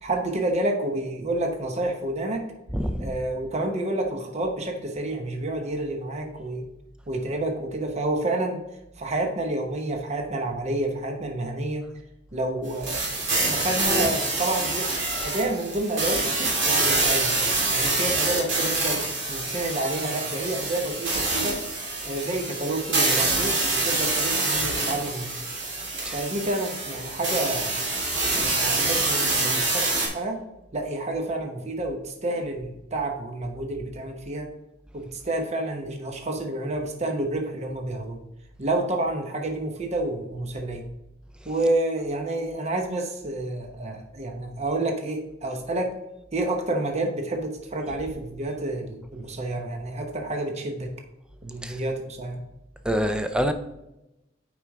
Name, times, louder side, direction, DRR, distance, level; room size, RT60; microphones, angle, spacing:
voice 1, 0.0-2.4 3.0-6.7 7.1-8.6 9.0-11.8 12.3-13.1 13.5-15.0 15.2-17.4 17.7-19.0 19.3-21.6 22.0-25.4 26.1-28.0 28.3-30.4 30.7-34.5 34.9-38.2 38.6-40.8 41.4-45.9 46.3-50.9 51.4-52.4, right 2 dB, 35° right, 3 dB, 0.9 m, -29 dB
voice 2, 2.7-3.1 26.0-26.2 28.0-28.5 51.6-51.8 52.8-53.5, equal, 5° right, 8 dB, 0.5 m, -27 dB
sound 1, 12.8-30.1, right 2 dB, 70° right, 2.6 m, -26 dB
8.5 x 4.9 x 3.5 m, 0.91 s
head